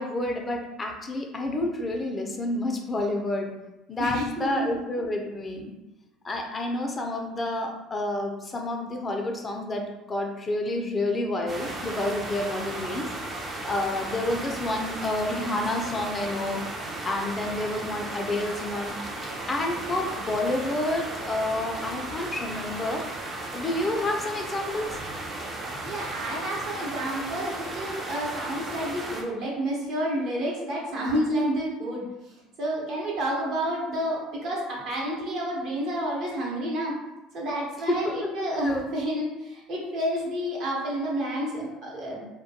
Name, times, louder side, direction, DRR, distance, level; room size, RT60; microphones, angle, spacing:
voice 1, 0.0-3.5 3.9-5.8 6.2-13.1 13.7-16.6 17.0-18.9 19.5-23.0 23.5-25.0 37.9-38.9, left 2 dB, 30° left, 2 dB, 0.4 m, -29 dB
voice 2, 4.0-4.7 25.8-36.9 37.3-42.2, equal, 60° right, -3 dB, 0.9 m, -30 dB
sound 1, 11.5-29.2, right 2 dB, 35° right, 0.5 m, -35 dB
2.2 x 2.2 x 2.7 m, 0.98 s
hypercardioid pair, 70°, 0 cm